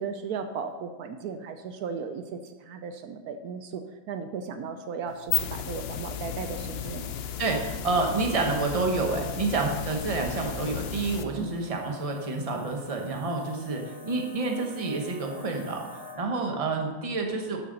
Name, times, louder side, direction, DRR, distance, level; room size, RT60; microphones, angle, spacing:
voice 1, 0.0-7.1 11.4-11.5, right 6 dB, 75° right, 8 dB, 1.1 m, -36 dB
sound 1, 5.1-11.2, left 9 dB, 65° left, 0.6 m, -34 dB
voice 2, 7.4-15.8 16.1-17.6, right 3 dB, 25° right, 2 dB, 1.1 m, -28 dB
sound 2, 9.7-16.1, left 2 dB, 40° left, 2.1 m, -48 dB
12.5 x 6.8 x 4.0 m, 1.2 s
omnidirectional pair, 1.7 m